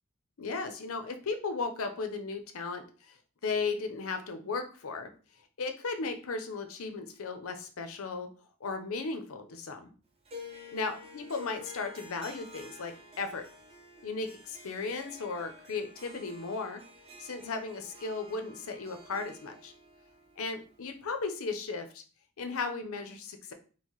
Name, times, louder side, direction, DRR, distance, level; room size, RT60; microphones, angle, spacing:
voice 1, 0.4-3.2 3.4-5.1 5.6-8.3 8.6-9.9 10.7-13.5 14.0-16.8 17.2-19.7 20.4-22.0 22.4-23.5, left 4 dB, 70° left, 7 dB, 0.6 m, -36 dB
Harp, 10.3-21.5, left 3 dB, 25° right, 0.6 m, -50 dB
4.5 x 2.1 x 3.0 m, 0.37 s
head